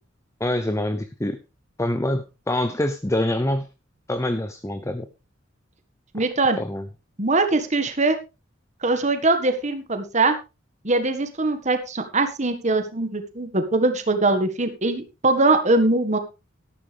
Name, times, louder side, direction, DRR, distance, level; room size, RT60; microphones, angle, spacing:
voice 1, 0.4-1.4 1.8-3.7 4.1-5.1 6.6-6.9, left 1 dB, 15° left, 10 dB, 0.7 m, -25 dB
voice 2, 6.1-6.6 7.2-8.2 8.8-10.4 10.8-16.2, right 2 dB, 35° right, 8 dB, 1.7 m, -22 dB
13.0 x 12.0 x 3.5 m, 0.28 s
head